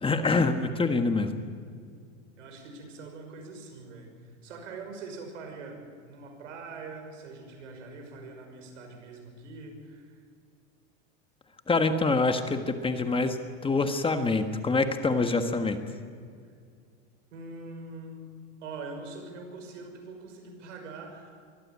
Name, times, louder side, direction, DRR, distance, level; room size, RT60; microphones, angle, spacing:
voice 1, 0.0-1.3 11.7-13.4 13.6-15.8, left 3 dB, 15° left, 8 dB, 1.5 m, -25 dB
voice 2, 2.4-10.2 16.4-16.5 17.3-18.3 18.6-21.4, right 3 dB, 90° right, 4 dB, 5.8 m, -43 dB
23.5 x 15.0 x 8.6 m, 2.2 s
supercardioid pair, 120°, 36 cm